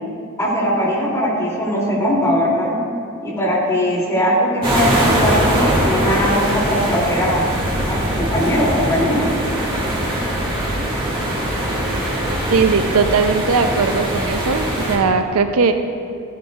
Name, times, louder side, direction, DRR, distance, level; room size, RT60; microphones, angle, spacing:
voice 1, 0.4-2.8 3.2-7.5 7.9-9.3, equal, 15° left, -6 dB, 2.6 m, -20 dB
sound 1, 4.6-15.0, right 1 dB, 25° right, 2.1 m, -21 dB
voice 2, 12.5-15.7, right 5 dB, 70° right, 8 dB, 0.5 m, -18 dB
14.0 x 11.0 x 2.3 m, 2.4 s
head